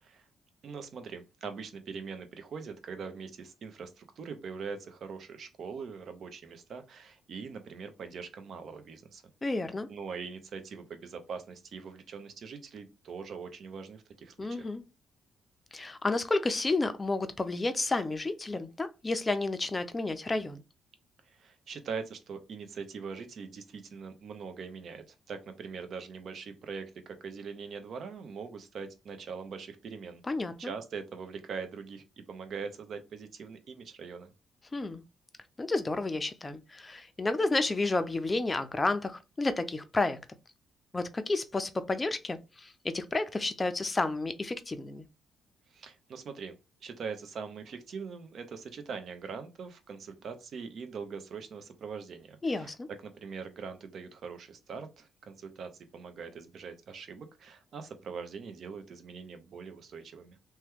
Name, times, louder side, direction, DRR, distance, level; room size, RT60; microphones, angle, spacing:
voice 1, 0.6-9.2 9.9-14.7 21.2-30.2 30.6-34.3 45.7-46.6 46.8-52.7 53.0-60.4, right 5 dB, 60° right, 0.6 m, -42 dB
voice 2, 9.4-9.9 14.4-14.8 15.7-20.6 30.3-30.7 34.7-35.0 35.6-40.2 40.9-45.1 52.4-52.9, left 2 dB, 25° left, 0.5 m, -31 dB
2.9 x 2.2 x 3.4 m
cardioid pair, 90°, 0 cm